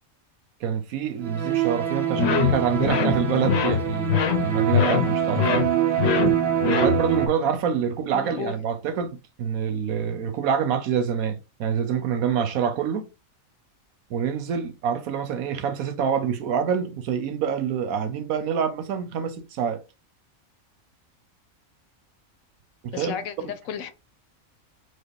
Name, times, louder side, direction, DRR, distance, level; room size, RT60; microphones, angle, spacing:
voice 1, 0.6-5.6 5.9-6.0 6.7-13.1 14.1-19.8 22.8-23.5, right 7 dB, 90° right, 1.2 m, -26 dB
sound 1, 1.2-7.3, right 9 dB, 55° right, 0.8 m, -25 dB
sound 2, 2.2-7.3, left 7 dB, 60° left, 0.8 m, -24 dB
voice 2, 8.1-8.5 22.9-23.9, left 8 dB, 80° left, 1.1 m, -33 dB
4.8 x 2.1 x 4.7 m
omnidirectional pair, 1.5 m